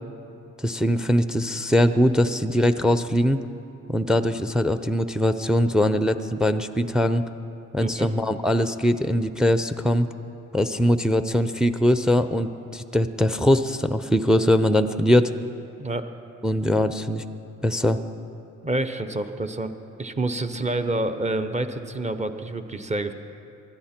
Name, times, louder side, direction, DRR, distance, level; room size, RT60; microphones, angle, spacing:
voice 1, 0.6-3.4 3.9-7.2 7.7-10.1 10.5-15.3 16.4-17.2 17.6-18.0, equal, ahead, 11 dB, 0.5 m, -21 dB
voice 2, 7.8-8.1 15.8-16.1 18.6-19.7 20.0-23.1, right 2 dB, 25° right, 8 dB, 1.0 m, -28 dB
20.0 x 12.0 x 4.4 m, 2.7 s
cardioid pair, 90°, 30 cm